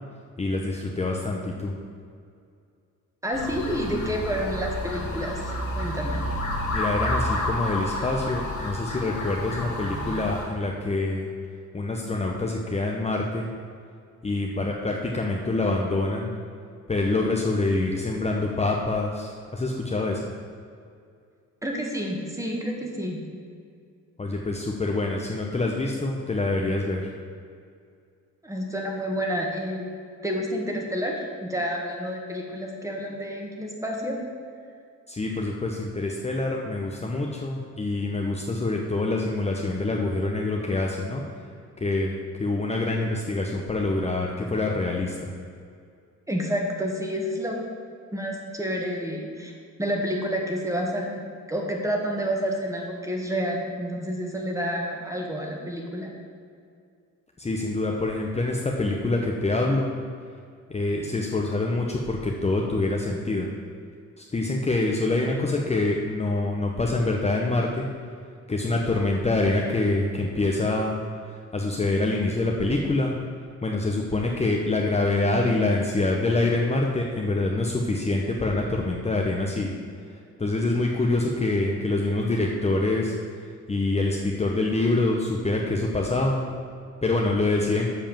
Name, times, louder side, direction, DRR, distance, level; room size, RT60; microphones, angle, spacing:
voice 1, 0.4-1.7 6.7-11.3 11.7-13.5 14.2-16.3 16.9-20.2 24.2-27.1 35.1-41.2 41.8-42.1 42.4-45.3 57.4-59.9 60.7-63.5 64.2-67.9 68.5-71.0 71.3-73.1 73.6-79.7 80.4-83.2 83.7-86.4 87.0-87.9, left 2 dB, 20° left, 0 dB, 0.9 m, -25 dB
voice 2, 3.2-6.2 21.6-23.2 28.4-29.9 30.2-31.1 31.4-34.2 46.3-47.6 48.1-49.5 49.8-51.2 51.5-56.1, equal, 10° right, 0 dB, 1.7 m, -29 dB
sound 1, 3.3-10.4, left 1 dB, 75° left, 2.2 m, -30 dB
7.6 x 4.9 x 7.3 m, 2.3 s
cardioid pair, 90°, 30 cm